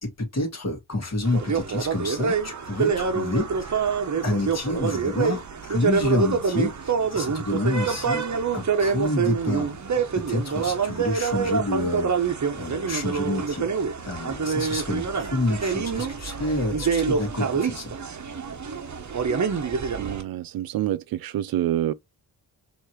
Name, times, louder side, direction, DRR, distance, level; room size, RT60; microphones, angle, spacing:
voice 1, 0.0-8.2 8.5-9.7 10.1-13.7 14.0-17.9, left 2 dB, 40° left, 2.4 m, -28 dB
sound 1, 1.3-20.2, right 5 dB, 45° right, 1.3 m, -26 dB
voice 2, 20.0-21.9, right 12 dB, 60° right, 0.5 m, -27 dB
4.9 x 3.1 x 3.0 m
supercardioid pair, 50°, 42 cm